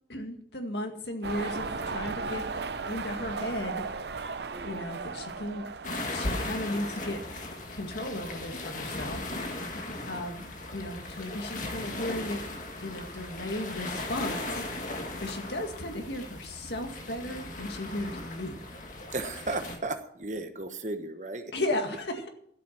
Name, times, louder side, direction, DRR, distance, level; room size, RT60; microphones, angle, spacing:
voice 1, 0.1-2.5 2.9-3.8 4.6-5.7 6.0-7.4 7.7-9.7 10.1-12.4 12.8-14.7 15.2-18.6 21.5-22.3, left 1 dB, 75° left, 5 dB, 1.9 m, -35 dB
sound 1, 1.2-7.4, right 4 dB, 70° right, 0.8 m, -36 dB
voice 2, 4.5-4.9 19.1-21.5, right 2 dB, 45° right, 7 dB, 1.2 m, -35 dB
sound 2, 5.8-19.8, left 2 dB, 45° left, 1.8 m, -37 dB
12.5 x 8.3 x 5.9 m, 0.69 s
head